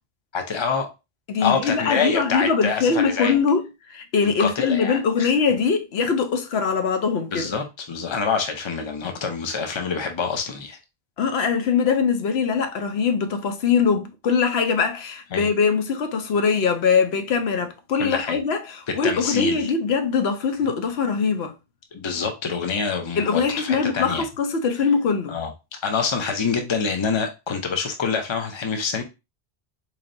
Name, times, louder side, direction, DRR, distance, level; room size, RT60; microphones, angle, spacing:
voice 1, 0.3-0.9 1.4-3.3 4.2-5.3 7.3-10.8 15.3-15.5 18.0-18.4 18.9-19.7 21.9-24.2 25.3-25.5 25.8-29.0, left 5 dB, 30° left, 0.6 m, -26 dB
voice 2, 1.3-7.5 11.2-21.5 23.2-25.4, left 5 dB, 80° left, 0.9 m, -22 dB
4.1 x 3.2 x 2.5 m
omnidirectional pair, 1.0 m